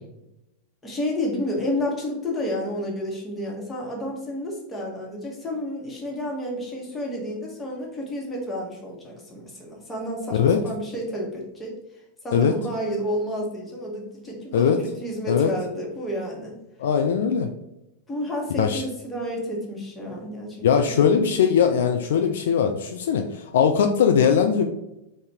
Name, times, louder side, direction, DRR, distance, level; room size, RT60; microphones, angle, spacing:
voice 1, 0.8-11.8 12.2-16.6 18.1-20.9, equal, 10° left, -2 dB, 1.3 m, -30 dB
voice 2, 16.8-17.5 18.6-18.8 20.6-24.7, left 7 dB, 60° left, 5 dB, 0.3 m, -20 dB
4.0 x 2.5 x 4.5 m, 0.90 s
figure-of-eight pair, 90°, 0 cm